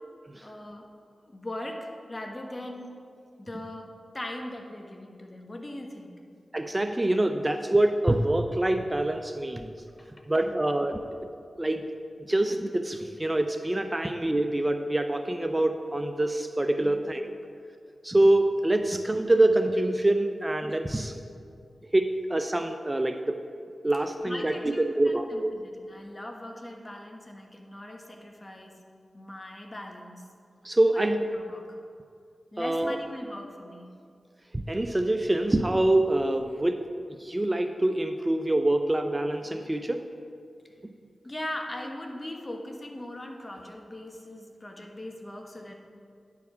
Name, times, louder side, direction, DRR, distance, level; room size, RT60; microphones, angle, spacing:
voice 1, 0.4-0.9 1.3-3.0 3.4-6.2 10.0-10.6 16.8-17.0 24.2-28.8 29.1-30.3 30.9-31.8 32.5-33.9 41.2-45.7, left 1 dB, 30° left, 2 dB, 1.2 m, -40 dB
voice 2, 6.5-9.7 10.3-11.0 11.6-11.9 12.3-17.4 18.0-21.1 21.9-23.4 23.8-25.5 30.6-31.2 32.6-33.0 34.5-36.8 37.2-40.0 40.8-40.9, right 1 dB, 25° right, 7 dB, 0.4 m, -25 dB
9.1 x 4.7 x 5.5 m, 2.3 s
cardioid pair, 40°, 0 cm